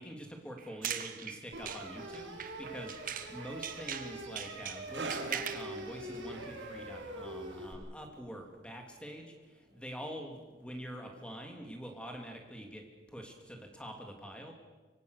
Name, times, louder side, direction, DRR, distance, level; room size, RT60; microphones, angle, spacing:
voice 1, 0.0-14.5, equal, 5° left, 2 dB, 3.1 m, -45 dB
sound 1, 0.6-3.4 3.6-5.7, right 9 dB, 45° right, 1.4 m, -40 dB
sound 2, 1.5-7.7, right 1 dB, 85° right, 5.2 m, -44 dB
sound 3, 4.9-11.9 12.1-12.4 13.1-13.2, right 3 dB, 65° right, 2.6 m, -48 dB
25.0 x 24.5 x 6.8 m, 1.3 s
head